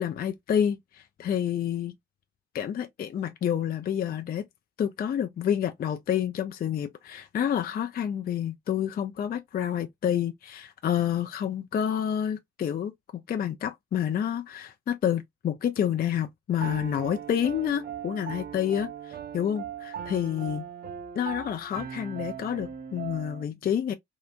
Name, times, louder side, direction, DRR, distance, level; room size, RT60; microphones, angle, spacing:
voice 1, 0.0-1.9 2.5-4.5 4.8-20.7 21.2-23.9, left 9 dB, 30° left, 0.4 m, -29 dB
Piano, 16.6-23.4, right 8 dB, 35° right, 0.4 m, -39 dB
2.8 x 2.0 x 2.4 m
hypercardioid pair, 50°, 30 cm